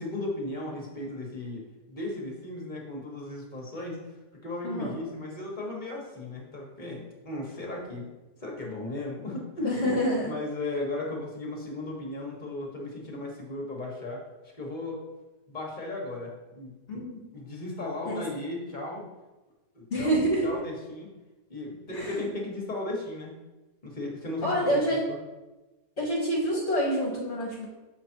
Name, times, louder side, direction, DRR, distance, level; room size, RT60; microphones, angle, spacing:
voice 1, 0.0-4.0 4.4-8.1 8.4-9.8 10.2-14.2 14.6-15.0 15.5-16.7 17.3-19.1 19.7-21.1 21.5-23.3 23.8-24.8 25.1-25.2, left 2 dB, 30° left, -1 dB, 1.4 m, -36 dB
voice 2, 4.6-5.0 9.6-10.3 16.9-17.2 18.0-18.2 19.9-20.5 21.9-22.2 24.4-25.0 26.0-27.7, equal, 45° left, -4 dB, 1.4 m, -27 dB
7.1 x 4.4 x 4.5 m, 1.1 s
omnidirectional pair, 1.8 m